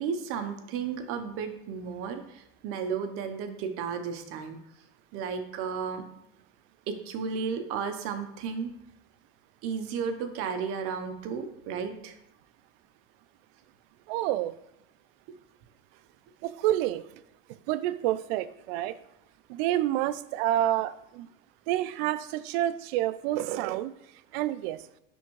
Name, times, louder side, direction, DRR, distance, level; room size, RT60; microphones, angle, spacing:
voice 1, 0.0-4.6 5.1-6.0 6.9-8.7 9.6-12.1, right 6 dB, 50° right, 7 dB, 0.8 m, -33 dB
voice 2, 14.1-14.5 16.4-17.0 17.7-19.0 19.5-21.3 21.7-23.9 24.3-24.8, right 13 dB, 85° right, 15 dB, 0.5 m, -28 dB
10.0 x 3.5 x 3.1 m, 0.84 s
cardioid pair, 165°, 29 cm